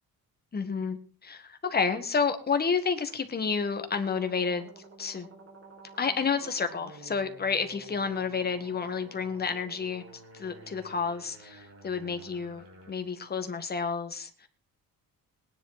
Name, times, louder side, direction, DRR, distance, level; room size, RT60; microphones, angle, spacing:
voice 1, 0.5-4.7 5.0-5.3 6.0-10.0 10.3-14.5, left 5 dB, 25° left, 7 dB, 1.7 m, -30 dB
sound 1, 4.0-12.9, right 2 dB, 40° right, 5.7 m, -51 dB
19.0 x 10.5 x 4.2 m, 0.39 s
cardioid pair, 155°, 36 cm